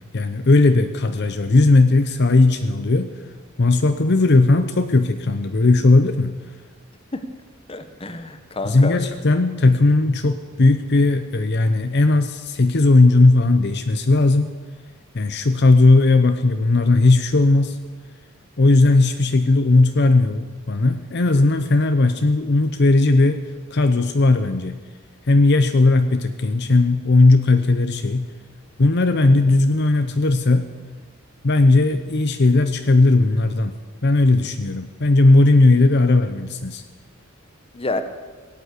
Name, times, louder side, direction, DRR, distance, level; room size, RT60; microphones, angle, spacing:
voice 1, 0.1-3.1 3.6-6.3 8.6-14.5 15.1-17.8 18.6-23.4 23.7-24.8 25.3-28.3 28.8-30.7 31.4-33.7 34.0-36.8, left 2 dB, 55° left, 8 dB, 0.7 m, -17 dB
voice 2, 7.7-9.0 37.7-38.0, left 2 dB, 25° left, 9 dB, 1.0 m, -28 dB
17.0 x 9.2 x 8.1 m, 1.4 s
head